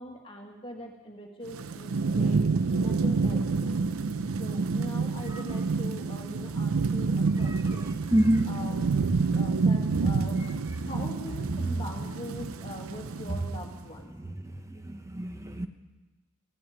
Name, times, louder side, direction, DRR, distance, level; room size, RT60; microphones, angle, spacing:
voice 1, 0.0-2.4 2.8-3.8 4.4-7.9 8.5-14.1, equal, 25° left, 1 dB, 1.7 m, -42 dB
Thunderstorm / Rain, 1.5-13.7, right 4 dB, 75° right, 0.6 m, -28 dB
voice 2, 8.1-8.5 11.5-11.7 14.4-15.7, right 1 dB, 15° right, 7 dB, 0.8 m, -27 dB
16.0 x 8.5 x 9.2 m, 1.2 s
head